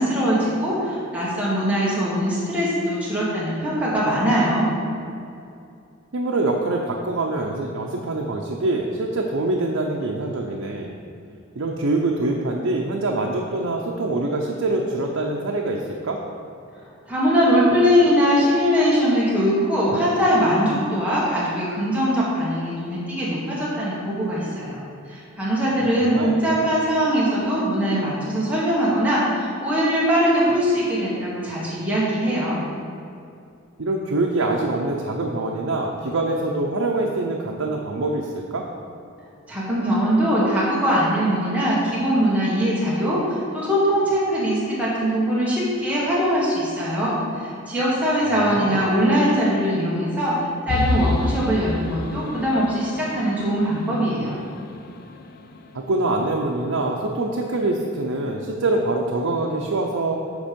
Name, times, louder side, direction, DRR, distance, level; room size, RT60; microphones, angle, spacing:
voice 1, 0.0-4.7 17.1-24.8 25.1-32.6 39.5-54.4, equal, 5° right, -8 dB, 1.6 m, -21 dB
voice 2, 6.1-10.9 11.6-16.2 26.0-26.5 33.8-38.7 48.5-48.9 55.7-60.2, right 2 dB, 75° right, 0 dB, 0.7 m, -24 dB
sound 1, 50.7-56.2, left 2 dB, 50° left, 0.5 m, -29 dB
8.1 x 5.3 x 5.2 m, 2.5 s
head